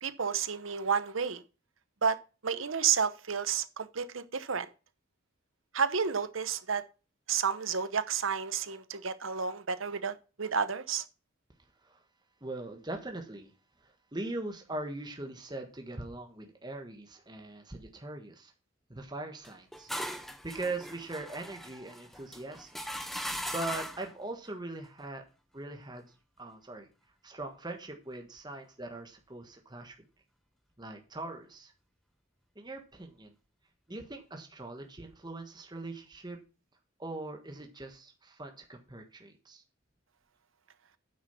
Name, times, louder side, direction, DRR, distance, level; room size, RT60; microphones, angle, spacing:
voice 1, 0.0-1.4 2.0-2.2 2.4-4.7 5.7-6.8 7.3-11.0, right 6 dB, 75° right, 0.9 m, -31 dB
voice 2, 12.4-13.5 13.8-18.5 18.9-19.9 20.4-22.8 23.1-25.2 25.5-26.9 27.2-30.0 30.8-31.7 32.5-33.3 33.9-36.4 37.0-39.6, right 2 dB, 20° right, 1.4 m, -41 dB
sound 1, 19.4-24.1, equal, ahead, 0.8 m, -39 dB
9.1 x 6.1 x 5.7 m
head